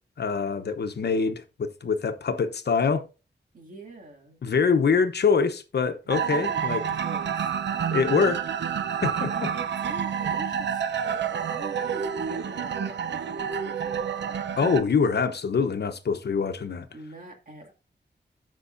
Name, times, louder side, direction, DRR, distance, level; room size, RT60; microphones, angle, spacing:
voice 1, 0.2-3.0 4.4-6.8 7.9-8.4 9.0-9.3 14.6-16.9, left 5 dB, 65° left, 1.0 m, -24 dB
voice 2, 3.5-4.4 6.3-7.5 9.1-14.5 16.9-17.7, right 2 dB, 50° right, 2.3 m, -44 dB
sound 1, 6.1-14.8, right 7 dB, 80° right, 0.7 m, -29 dB
14.0 x 5.5 x 2.6 m
wide cardioid pair, 155°, 18 cm